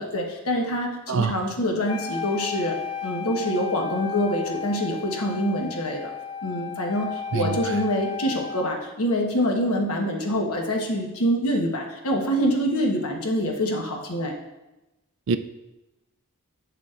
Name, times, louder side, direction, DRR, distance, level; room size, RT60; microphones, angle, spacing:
voice 1, 0.0-2.8 3.0-6.1 6.4-14.4, equal, 80° left, 1 dB, 1.2 m, -25 dB
voice 2, 1.1-1.3 7.3-7.6 15.3-15.4, right 5 dB, 55° right, 11 dB, 0.4 m, -24 dB
Wind instrument woodwind instrument, 1.9-8.8, left 6 dB, 20° left, 0.3 m, -34 dB
8.2 x 6.9 x 2.5 m, 1.0 s
head